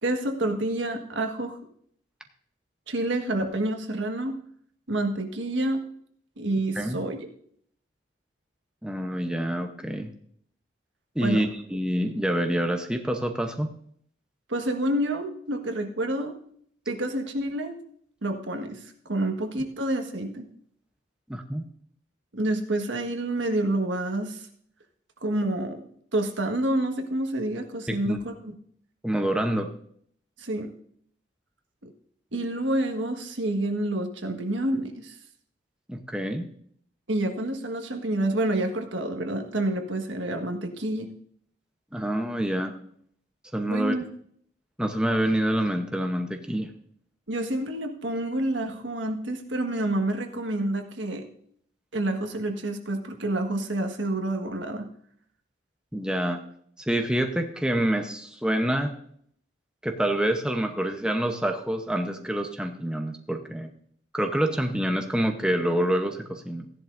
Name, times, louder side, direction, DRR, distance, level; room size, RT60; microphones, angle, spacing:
voice 1, 0.0-1.6 2.9-4.4 4.9-5.8 6.4-7.3 11.2-11.5 14.5-16.4 16.9-17.8 18.2-18.8 19.1-20.5 22.3-24.5 25.2-25.8 26.1-28.5 30.4-30.7 31.8-31.9 32.3-35.1 37.1-41.1 43.7-44.1 47.3-51.2 51.9-54.9, right 1 dB, 80° right, 4 dB, 1.5 m, -28 dB
voice 2, 8.8-10.1 11.2-13.7 21.3-21.6 27.9-28.2 29.0-29.7 35.9-36.5 41.9-42.7 43.5-43.9 44.8-46.7 55.9-56.4 56.9-58.9 59.8-63.7 64.1-66.7, right 1 dB, 5° right, 4 dB, 0.8 m, -27 dB
15.5 x 10.5 x 2.6 m, 0.63 s
head